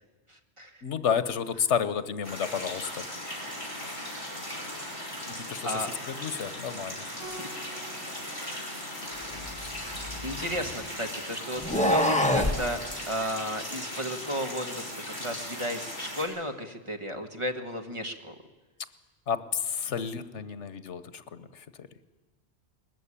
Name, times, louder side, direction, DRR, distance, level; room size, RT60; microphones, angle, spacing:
voice 1, 0.3-0.8 3.4-3.6 4.7-5.1 5.6-5.9 7.1-7.6 8.1-8.5 10.2-12.8 13.1-14.9 15.2-18.3, equal, 25° right, 5 dB, 1.6 m, -34 dB
voice 2, 0.8-3.0 5.4-7.0 8.5-8.7 9.3-9.6 10.1-10.3 19.3-21.9, left 7 dB, 85° left, 14 dB, 1.3 m, -31 dB
sound 1, 2.2-16.3, left 1 dB, 25° left, 5.6 m, -38 dB
Keyboard (musical), 7.2-9.8, right 1 dB, 85° right, 4.0 m, -49 dB
sound 2, 9.3-10.8 11.6-12.6, left 1 dB, 5° left, 1.5 m, -26 dB
20.0 x 14.5 x 10.0 m, 1.2 s
omnidirectional pair, 1.2 m